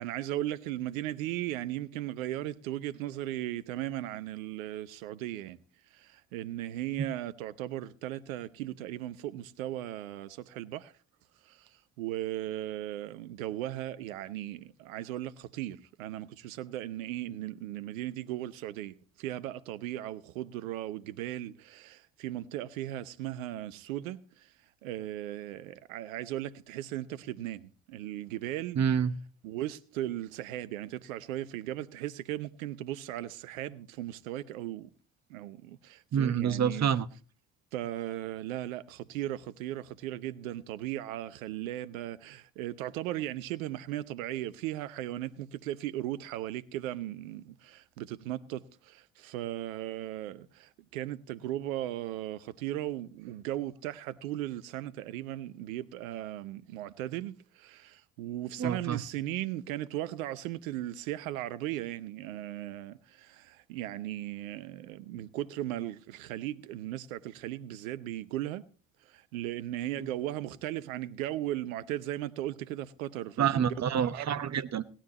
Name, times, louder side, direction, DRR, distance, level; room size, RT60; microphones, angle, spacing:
voice 1, 0.0-5.6 5.9-10.9 11.4-24.5 24.8-28.8 29.4-34.9 35.3-36.9 37.7-68.7 69.0-73.8 74.1-74.3, right 13 dB, 80° right, 0.8 m, -37 dB
voice 2, 28.7-29.1 36.1-37.1 58.6-59.0 70.0-70.1 73.4-74.9, right 8 dB, 40° right, 1.0 m, -27 dB
17.5 x 12.5 x 3.0 m
hypercardioid pair, 45°, 40 cm